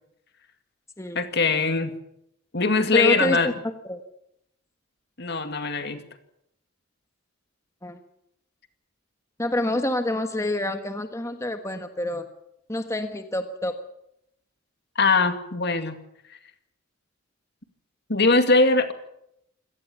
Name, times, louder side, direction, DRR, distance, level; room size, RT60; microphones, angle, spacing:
voice 1, 1.1-1.9 2.5-3.5 5.2-6.0 15.0-16.0 18.1-18.9, left 3 dB, 50° left, 8 dB, 2.2 m, -21 dB
voice 2, 2.9-3.4 3.9-4.0 7.8-8.0 9.4-12.3 12.7-13.8, left 1 dB, 15° left, 7 dB, 1.4 m, -27 dB
25.5 x 18.0 x 7.2 m, 0.78 s
head